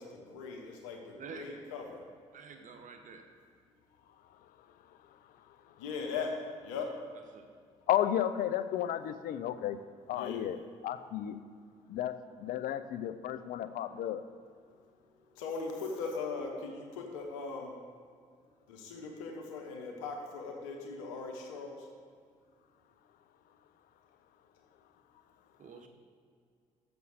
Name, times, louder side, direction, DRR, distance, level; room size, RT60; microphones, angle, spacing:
voice 1, 0.0-2.0 5.8-6.9 10.1-10.5 15.4-17.7 18.7-21.9, left 4 dB, 85° left, 1 dB, 1.0 m, -39 dB
voice 2, 1.2-1.5 2.3-3.2 7.3-7.4 25.6-25.9, right 6 dB, 55° right, 5 dB, 1.0 m, -48 dB
voice 3, 7.9-9.8 10.1-10.6 10.8-11.4 11.9-14.2, left 11 dB, 65° left, 12 dB, 0.5 m, -33 dB
7.0 x 6.9 x 6.5 m, 2.2 s
hypercardioid pair, 50°, 16 cm